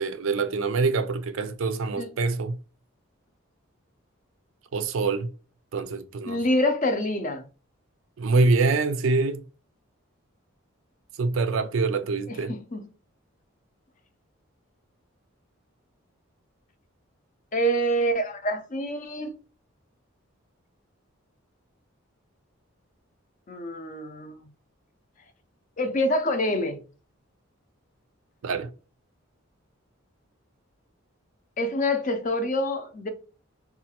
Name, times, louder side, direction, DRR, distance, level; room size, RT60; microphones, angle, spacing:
voice 1, 0.0-2.6 4.7-5.3 5.7-6.4 8.2-9.4 11.2-12.5 28.4-28.7, right 3 dB, 70° right, 0.4 m, -25 dB
voice 2, 6.3-7.4 12.3-12.8 17.5-19.4 23.5-24.4 25.8-26.8 31.6-33.1, equal, 35° left, 0.5 m, -26 dB
4.0 x 2.4 x 2.9 m
head